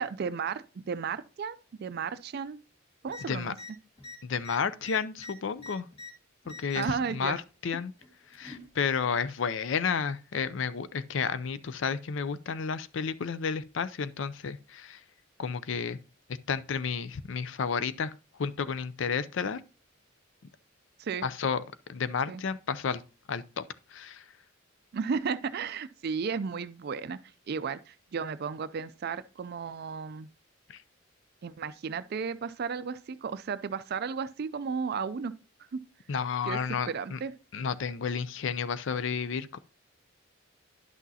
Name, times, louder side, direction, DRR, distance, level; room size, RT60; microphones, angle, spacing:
voice 1, 0.0-2.6 3.0-3.6 6.8-7.4 21.0-21.2 22.3-22.4 24.9-27.2 27.5-30.3 31.4-35.3 35.7-35.8 36.5-36.6 36.9-37.3, right 6 dB, 50° right, 0.4 m, -34 dB
sound 1, 3.1-3.2 3.5-3.7 4.0-6.1 6.4-7.0 8.0-8.7 9.7-9.8, left 3 dB, 30° left, 1.7 m, -45 dB
voice 2, 4.2-5.9 6.5-7.4 7.6-7.9 8.3-15.0 15.4-16.0 16.5-18.1 18.4-19.6 21.2-21.6 21.9-23.0 23.3-23.6 23.9-24.2 30.7-30.8 36.1-37.2 37.5-39.6, left 6 dB, 60° left, 0.5 m, -31 dB
10.5 x 6.1 x 2.8 m
head